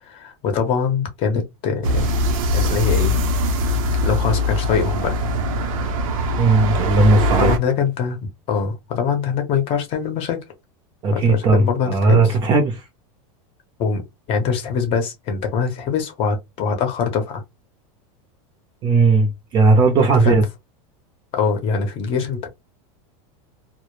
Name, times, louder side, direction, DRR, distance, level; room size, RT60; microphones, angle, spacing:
voice 1, 0.0-2.1 2.5-3.2 4.0-5.2 7.4-10.4 11.1-12.3 13.8-14.0 14.3-17.4 20.2-20.4 21.3-22.5, left 6 dB, 35° left, 0.7 m, -23 dB
sound 1, 1.8-7.6, left 1 dB, 80° right, 0.6 m, -21 dB
voice 2, 6.4-7.5 11.0-12.8 18.8-20.4, right 3 dB, 25° right, 0.5 m, -16 dB
2.0 x 2.0 x 3.0 m
supercardioid pair, 160°, 17 cm